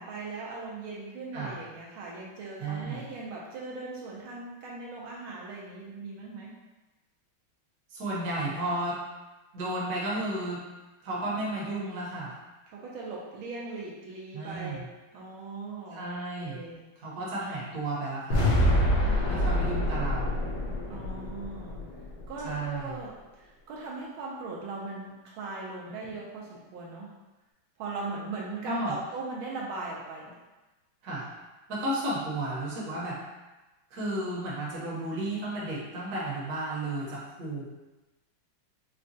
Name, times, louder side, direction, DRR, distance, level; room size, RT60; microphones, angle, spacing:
voice 1, 0.0-6.5 12.7-14.8 15.1-16.9 19.0-19.9 20.9-21.8 22.3-27.1 27.8-30.3, right 3 dB, 80° right, -4 dB, 1.4 m, -39 dB
voice 2, 2.6-3.0 7.9-9.0 9.5-10.6 11.0-12.3 14.3-14.9 15.9-16.6 17.0-18.5 19.3-20.4 22.4-23.0 28.6-29.0 31.0-31.3 31.7-33.2 33.9-37.6, right 1 dB, 55° right, -6 dB, 1.3 m, -33 dB
sound 1, 18.3-22.5, equal, 65° left, 1.4 m, -26 dB
4.9 x 2.2 x 2.6 m, 1.1 s
omnidirectional pair, 2.3 m